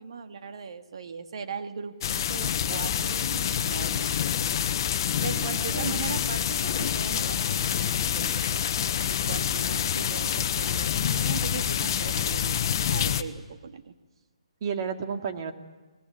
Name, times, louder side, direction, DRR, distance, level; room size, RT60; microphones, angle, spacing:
voice 1, 0.0-4.4 5.2-8.7 9.0-13.9, right 5 dB, 60° right, 6 dB, 2.0 m, -39 dB
sound 1, 2.0-13.2, left 9 dB, 40° left, 1.2 m, -27 dB
voice 2, 5.3-6.1 14.6-15.5, right 6 dB, 40° right, 5 dB, 2.3 m, -33 dB
24.5 x 20.5 x 9.1 m, 1.3 s
figure-of-eight pair, 145°, 3 cm